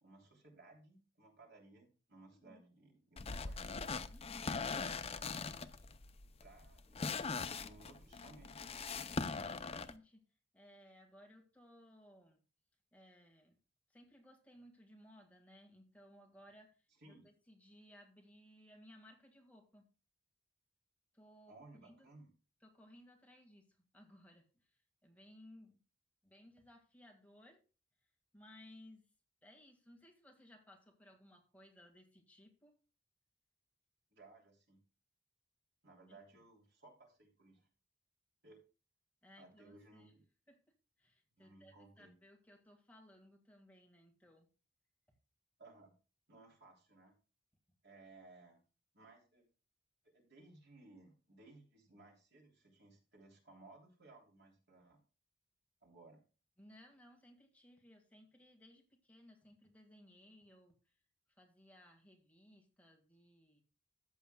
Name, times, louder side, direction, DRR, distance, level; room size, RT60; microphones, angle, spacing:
voice 1, 0.0-3.6 5.3-5.9 6.4-8.7 17.0-17.3 21.5-22.3 34.1-34.8 35.8-37.7 38.4-38.6 39.4-40.2 41.4-42.1 45.6-45.9 46.3-47.2 47.8-48.6 48.9-49.5 50.0-55.0 55.8-56.2, right 2 dB, 60° right, 1 dB, 3.3 m, -61 dB
sound 1, 3.2-9.9, left 4 dB, 30° left, 0.6 m, -41 dB
voice 2, 4.1-4.5 9.2-10.2 10.5-12.4 12.9-13.6 13.9-19.9 21.1-22.1 22.6-25.8 26.2-27.6 28.3-29.1 29.4-32.7 36.1-36.2 39.2-40.1 40.5-40.6 41.0-44.5 45.1-45.2 56.6-61.0 61.3-63.6, left 1 dB, 10° left, 2 dB, 1.9 m, -61 dB
14.0 x 8.2 x 2.3 m, 0.34 s
head